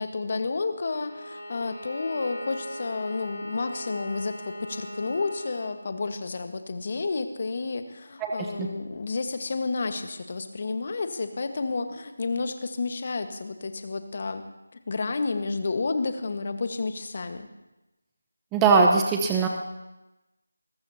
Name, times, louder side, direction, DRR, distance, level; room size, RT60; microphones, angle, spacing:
voice 1, 0.0-14.4 14.9-17.5, left 3 dB, 45° left, 8 dB, 1.4 m, -31 dB
Bowed string instrument, 0.9-5.8, equal, 75° left, 3.3 m, -39 dB
voice 2, 8.2-8.7 18.5-19.5, right 4 dB, 10° right, 1 dB, 0.9 m, -21 dB
22.0 x 18.5 x 2.9 m, 1.0 s
figure-of-eight pair, 165°, 0 cm